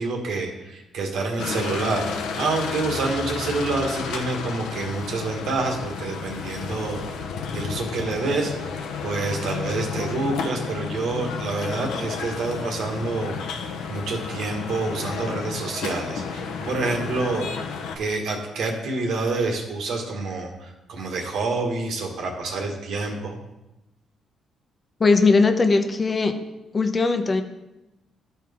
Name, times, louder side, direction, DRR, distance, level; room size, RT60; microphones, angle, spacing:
voice 1, 0.0-7.0 7.5-13.4 13.9-17.5 17.9-23.4, right 3 dB, 75° right, 2 dB, 1.5 m, -27 dB
sound 1, 1.4-18.0, left 5 dB, 85° left, 0.8 m, -32 dB
voice 2, 25.0-26.3 26.7-27.4, left 3 dB, 30° left, 7 dB, 0.8 m, -19 dB
13.0 x 4.5 x 3.6 m, 0.95 s
cardioid pair, 90°, 0 cm